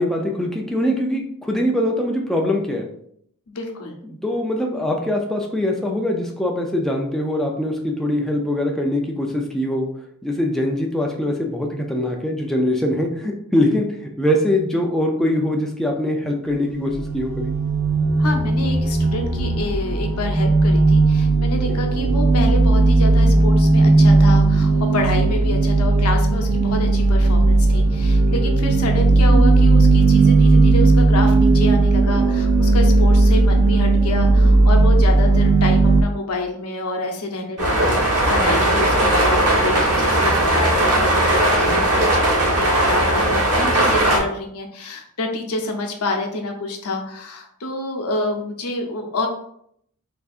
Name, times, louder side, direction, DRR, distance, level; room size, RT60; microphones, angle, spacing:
voice 1, 0.0-2.9 4.1-9.9 10.2-17.5 21.7-21.8, left 1 dB, ahead, 0 dB, 0.4 m, -22 dB
voice 2, 3.5-4.0 18.2-49.3, left 2 dB, 85° left, 3 dB, 0.7 m, -27 dB
sound 1, 16.5-36.0, right 2 dB, 65° right, 0.5 m, -16 dB
sound 2, 37.6-44.2, right 1 dB, 90° right, 1.2 m, -18 dB
4.4 x 2.7 x 2.4 m, 0.68 s
head